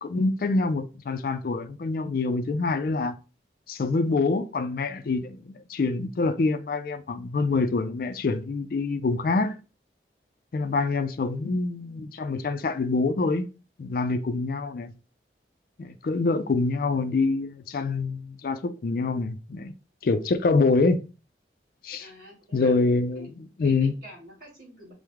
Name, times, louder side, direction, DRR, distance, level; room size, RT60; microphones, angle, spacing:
voice 1, 0.0-3.1 3.7-9.5 10.5-13.5 13.8-14.9 15.8-19.7 20.0-21.0 21.8-22.1 22.5-23.9, left 3 dB, 55° left, 0.4 m, -26 dB
voice 2, 22.0-22.9 23.1-23.3 23.6-24.9, equal, 50° right, 2.1 m, -47 dB
4.7 x 2.1 x 3.5 m
head